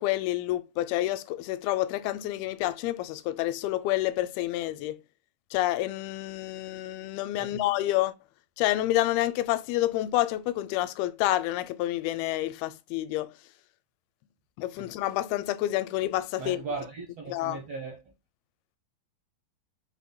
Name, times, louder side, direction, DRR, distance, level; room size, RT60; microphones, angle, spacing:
voice 1, 0.0-5.0 5.5-8.1 8.6-13.3 14.6-16.6 17.3-17.6, left 15 dB, 85° left, 2.4 m, -28 dB
voice 2, 16.4-18.0, right 4 dB, 70° right, 1.5 m, -37 dB
6.1 x 3.6 x 2.2 m
omnidirectional pair, 4.3 m